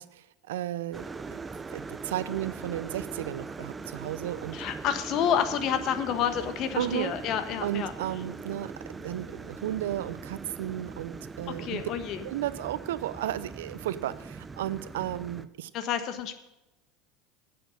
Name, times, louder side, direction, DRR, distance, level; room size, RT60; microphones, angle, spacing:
voice 1, 0.0-1.4 1.7-4.6 6.8-7.1 7.6-8.7 9.0-11.8 12.2-15.7, right 13 dB, 75° right, 16 dB, 0.5 m, -34 dB
sound 1, 0.9-15.5, right 4 dB, 20° right, 0.6 m, -41 dB
voice 2, 4.5-7.9 11.6-12.2 15.7-16.3, left 9 dB, 50° left, 10 dB, 1.3 m, -29 dB
10.0 x 7.9 x 6.5 m, 0.99 s
hypercardioid pair, 85°, 0 cm